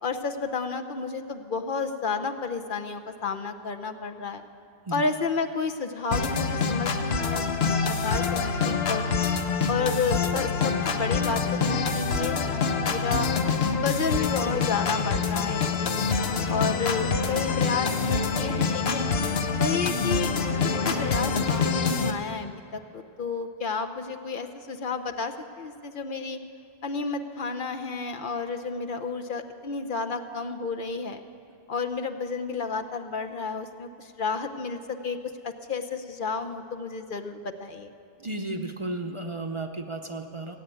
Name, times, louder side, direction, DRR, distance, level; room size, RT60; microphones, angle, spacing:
voice 1, 0.0-4.4 4.9-7.4 8.0-9.2 9.7-13.3 13.8-15.9 16.5-19.1 19.6-20.3 20.6-26.4 26.8-31.2 31.7-35.2 35.4-37.9, left 4 dB, 55° left, 6 dB, 0.9 m, -31 dB
sound 1, 6.1-22.1, left 5 dB, 75° left, 1.1 m, -26 dB
voice 2, 38.2-40.6, right 2 dB, 35° right, 4 dB, 0.7 m, -33 dB
17.5 x 8.1 x 9.1 m, 2.4 s
omnidirectional pair, 1.1 m